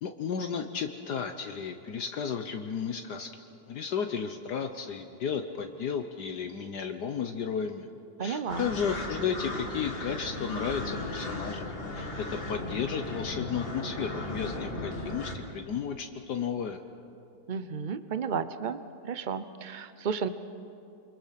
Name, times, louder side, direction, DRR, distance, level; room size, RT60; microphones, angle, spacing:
voice 1, 0.0-3.3 3.7-7.9 8.2-16.8, left 7 dB, 65° left, 6 dB, 1.4 m, -33 dB
voice 2, 8.2-8.7 17.5-18.8 19.0-20.3, right 6 dB, 65° right, 12 dB, 0.4 m, -32 dB
sound 1, 8.5-15.3, left 2 dB, 30° left, 2.1 m, -36 dB
28.0 x 24.5 x 5.9 m, 2.7 s
omnidirectional pair, 2.0 m